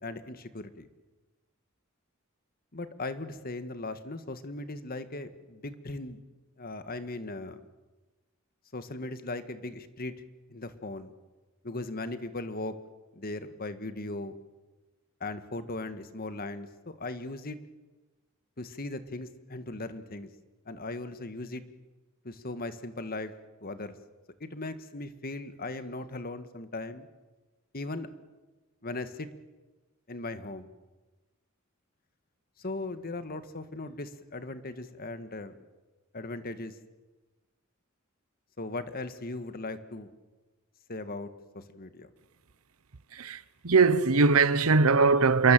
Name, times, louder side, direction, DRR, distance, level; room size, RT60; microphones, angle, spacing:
voice 1, 0.0-0.9 2.7-6.2 6.6-7.6 8.7-10.1 10.5-11.1 11.6-12.8 13.1-14.4 15.2-17.6 18.6-20.3 20.7-21.6 22.2-23.3 23.6-24.0 24.4-27.1 27.7-28.1 28.8-29.3 30.1-30.7 32.6-35.6 36.1-36.8 38.6-40.1 40.9-41.3 41.5-42.1, left 2 dB, 45° left, 1.7 m, -38 dB
voice 2, 43.6-45.5, right 4 dB, 85° right, 1.0 m, -21 dB
27.5 x 22.5 x 7.7 m
head